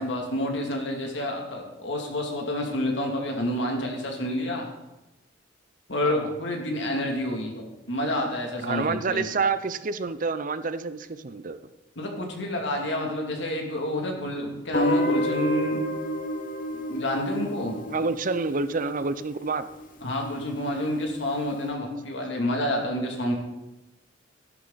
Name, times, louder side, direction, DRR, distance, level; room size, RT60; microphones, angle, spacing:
voice 1, 0.0-4.7 5.9-9.3 12.0-15.8 16.9-17.9 20.0-23.4, left 1 dB, 75° left, 1 dB, 2.6 m, -28 dB
voice 2, 6.0-6.3 8.6-11.6 17.9-19.7, right 4 dB, 45° right, 13 dB, 0.6 m, -28 dB
Guitar, 14.7-19.6, left 1 dB, 50° left, 1.2 m, -30 dB
13.0 x 11.0 x 4.0 m, 0.99 s
head